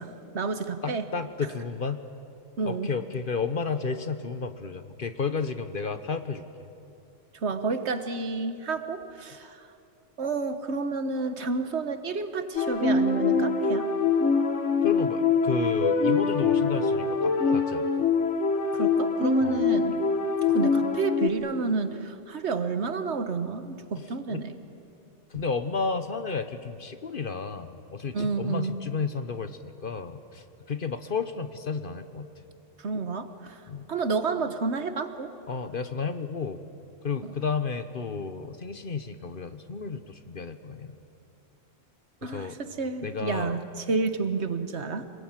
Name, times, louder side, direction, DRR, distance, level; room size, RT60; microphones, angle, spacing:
voice 1, 0.0-1.0 2.6-2.9 7.3-9.7 10.2-13.9 18.7-20.0 20.4-24.6 25.3-25.4 28.1-28.8 32.8-33.6 33.9-35.3 37.2-37.3 42.2-45.0, right 4 dB, 60° right, 9 dB, 1.5 m, -30 dB
voice 2, 0.8-2.0 2.7-6.4 14.8-18.1 19.4-19.7 24.0-24.4 25.3-32.3 33.7-33.9 35.5-36.6 37.0-41.0 42.2-42.6 43.0-43.6, left 5 dB, 45° left, 10 dB, 1.1 m, -32 dB
sound 1, 12.6-21.3, left 4 dB, 70° left, 1.6 m, -24 dB
26.5 x 20.0 x 9.0 m, 2.6 s
omnidirectional pair, 1.3 m